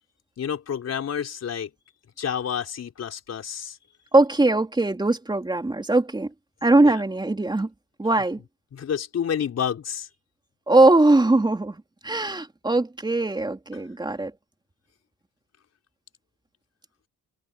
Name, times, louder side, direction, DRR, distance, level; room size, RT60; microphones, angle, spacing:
voice 1, 0.4-1.7 2.2-3.8 6.8-6.9 8.7-10.1, left 8 dB, 55° left, 4.8 m, -29 dB
voice 2, 4.1-6.3 6.6-7.7 8.0-8.4 10.7-14.3, right 2 dB, 15° right, 3.3 m, -21 dB
cardioid pair, 90°, 30 cm